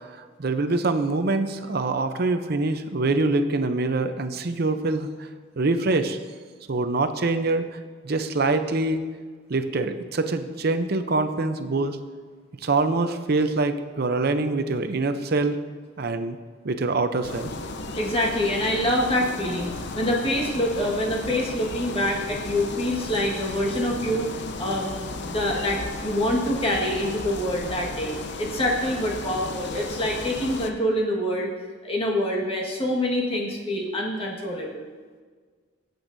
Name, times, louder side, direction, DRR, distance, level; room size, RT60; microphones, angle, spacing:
voice 1, 0.0-5.3 5.6-6.2 6.7-7.7 8.0-9.1 9.5-12.0 12.6-15.6 16.0-16.4 16.6-17.5, right 3 dB, 50° right, 9 dB, 0.6 m, -24 dB
sound 1, 17.2-30.7, left 3 dB, 60° left, 0.7 m, -34 dB
voice 2, 17.9-24.3 24.6-31.5 31.8-34.9, left 1 dB, 30° left, -2 dB, 1.6 m, -26 dB
17.5 x 8.0 x 2.7 m, 1.5 s
head